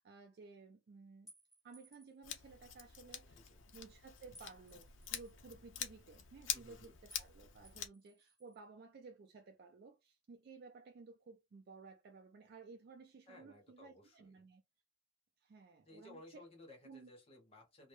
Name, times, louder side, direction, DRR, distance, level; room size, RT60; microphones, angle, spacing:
voice 1, 0.0-1.3 1.6-3.4 3.7-14.6 15.4-16.5 16.8-17.1, right 4 dB, 55° right, 0.3 m, -56 dB
sound 1, 1.3-2.2 4.3-5.3 7.1-7.3 7.6-8.6, equal, 5° right, 1.2 m, -62 dB
Scissors, 2.2-7.9, left 9 dB, 85° left, 0.5 m, -46 dB
voice 2, 6.5-7.0 13.3-14.5 15.8-17.9, left 1 dB, 30° left, 0.9 m, -59 dB
2.2 x 2.0 x 2.9 m
head